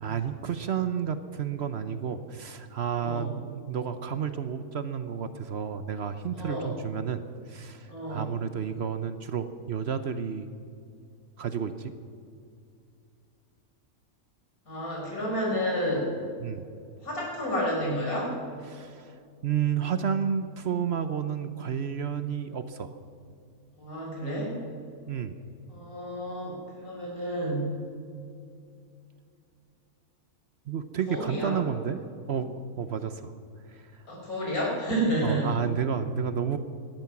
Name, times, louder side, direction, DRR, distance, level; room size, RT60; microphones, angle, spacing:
voice 1, 0.0-7.2 7.5-10.5 11.4-11.9 16.4-16.7 18.7-23.0 25.1-25.4 30.7-32.0 32.3-32.5 32.8-33.3 33.7-33.9 34.4-34.5 35.2-36.6, right 7 dB, 55° right, 10 dB, 0.9 m, -31 dB
voice 2, 3.0-3.3 6.4-6.7 7.9-8.2 14.7-16.1 17.0-18.3 23.8-24.6 25.7-27.7 31.1-31.5 34.1-35.6, equal, 85° left, -3 dB, 5.1 m, -30 dB
18.0 x 12.0 x 5.9 m, 2.4 s
omnidirectional pair, 1.5 m